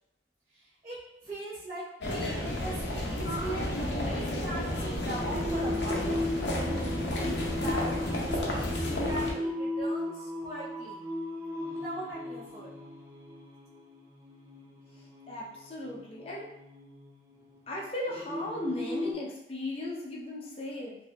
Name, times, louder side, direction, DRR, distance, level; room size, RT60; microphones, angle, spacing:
voice 1, 0.5-1.0 1.2-6.5 7.4-7.9 8.2-11.0 11.7-12.7, right 1 dB, 35° right, -15 dB, 1.1 m, -41 dB
sound 1, 2.0-9.3, left 1 dB, 75° left, 0.7 m, -31 dB
Singing, 5.1-19.1, left 1 dB, 15° right, 0.4 m, -37 dB
voice 2, 15.0-16.5 17.7-21.0, left 1 dB, 30° left, -3 dB, 0.6 m, -37 dB
4.4 x 2.7 x 2.3 m, 0.85 s
head